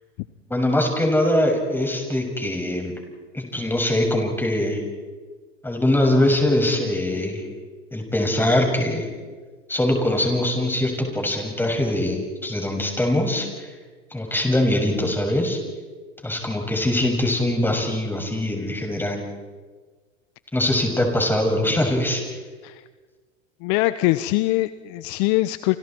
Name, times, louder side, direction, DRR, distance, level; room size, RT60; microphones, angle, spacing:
voice 1, 0.5-2.9 3.3-4.8 5.6-7.4 7.9-9.1 9.7-13.5 14.1-15.6 16.2-19.2 20.5-22.2, left 1 dB, 5° left, 2 dB, 6.8 m, -22 dB
voice 2, 23.6-25.8, left 18 dB, 50° left, 14 dB, 0.9 m, -22 dB
29.0 x 27.5 x 4.6 m, 1.4 s
hypercardioid pair, 105°, 38 cm